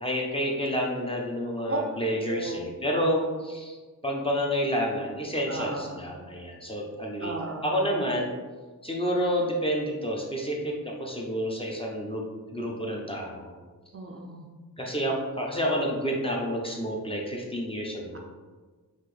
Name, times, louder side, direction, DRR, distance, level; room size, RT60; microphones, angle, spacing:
voice 1, 0.0-3.8 4.0-7.3 7.6-8.3 8.8-12.2 12.5-13.5 14.8-18.2, equal, 15° left, -2 dB, 0.6 m, -29 dB
voice 2, 2.3-2.6 5.5-6.0 7.2-7.7 13.9-14.5, right 3 dB, 40° right, 1 dB, 0.5 m, -34 dB
5.7 x 2.5 x 3.2 m, 1.4 s
wide cardioid pair, 155°, 36 cm